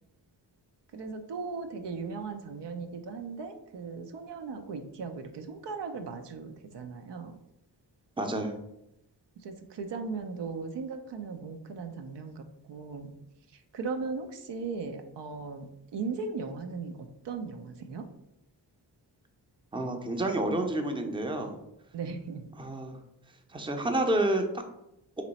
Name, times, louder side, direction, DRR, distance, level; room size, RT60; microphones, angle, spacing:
voice 1, 0.9-7.4 9.4-13.2 13.5-18.1 21.9-22.5, right 4 dB, 75° right, 6 dB, 0.6 m, -38 dB
voice 2, 8.2-8.6 19.7-21.6 22.6-23.0 23.5-24.6, right 1 dB, 10° right, 4 dB, 0.6 m, -29 dB
3.0 x 2.9 x 4.1 m, 0.84 s
cardioid pair, 55°, 42 cm